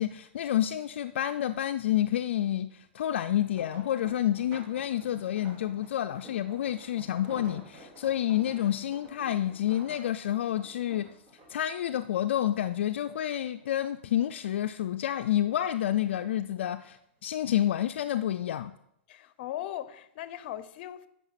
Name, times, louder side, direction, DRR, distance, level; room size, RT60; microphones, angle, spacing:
voice 1, 0.0-11.1 11.5-18.7, left 11 dB, 80° left, 0.4 m, -29 dB
sound 1, 3.4-12.8 13.2-14.1 14.5-15.9 16.6-16.9 17.3-17.4, right 1 dB, 30° right, 2.6 m, -52 dB
voice 2, 19.1-21.1, left 12 dB, 55° left, 0.7 m, -38 dB
9.1 x 5.6 x 5.8 m
hypercardioid pair, 140°, 6 cm